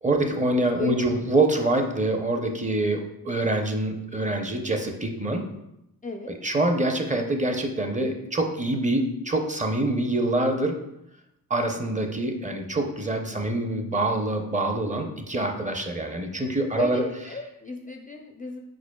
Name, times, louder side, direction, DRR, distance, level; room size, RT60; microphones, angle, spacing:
voice 1, 0.0-5.4 6.3-10.8 11.5-17.0, right 2 dB, 20° right, 4 dB, 0.6 m, -25 dB
voice 2, 0.8-1.2 6.0-6.3 13.3-13.5 16.7-18.6, left 3 dB, 20° left, 3 dB, 0.4 m, -34 dB
4.9 x 4.2 x 2.3 m, 0.85 s
cardioid pair, 65°, 39 cm